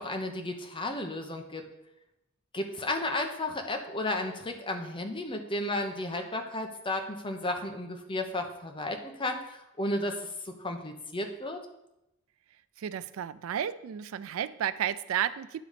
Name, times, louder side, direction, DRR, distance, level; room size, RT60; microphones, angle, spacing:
voice 1, 0.0-1.7 2.5-11.6, left 1 dB, 25° left, 5 dB, 0.9 m, -33 dB
voice 2, 12.8-15.6, right 9 dB, 70° right, 15 dB, 0.3 m, -32 dB
10.5 x 3.9 x 5.0 m, 0.88 s
head